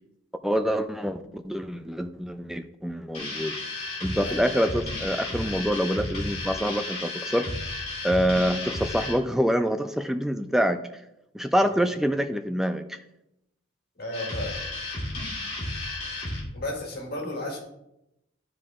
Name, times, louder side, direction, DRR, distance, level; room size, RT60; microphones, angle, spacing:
voice 1, 0.4-3.5 4.0-7.5 8.0-10.8 11.3-13.0, equal, ahead, 8 dB, 0.3 m, -26 dB
sound 1, 3.1-9.2 14.1-16.4, left 2 dB, 30° left, 2.3 m, -33 dB
voice 2, 14.0-14.5 16.5-17.6, left 1 dB, 45° left, -1 dB, 2.0 m, -33 dB
12.0 x 4.9 x 3.6 m, 0.86 s
head